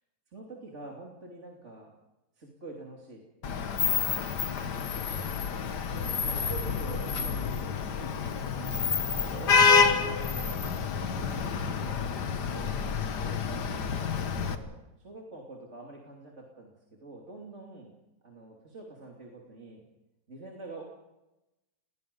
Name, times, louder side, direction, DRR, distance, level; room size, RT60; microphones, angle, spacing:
voice 1, 0.3-1.9 2.4-3.2 3.9-4.4 4.9-5.6 5.9-8.2 8.5-10.1 10.5-12.8 13.2-13.4 14.2-16.7 17.0-17.9 18.2-19.9 20.3-20.8, right 3 dB, 45° right, -2 dB, 3.1 m, -46 dB
Vehicle horn car horn honking / Traffic noise roadway noise, 3.4-14.6, left 6 dB, 80° left, 1.9 m, -28 dB
sound 1, 8.7-14.7, equal, 10° left, 5.7 m, -44 dB
29.5 x 20.5 x 5.4 m, 0.99 s
omnidirectional pair, 1.8 m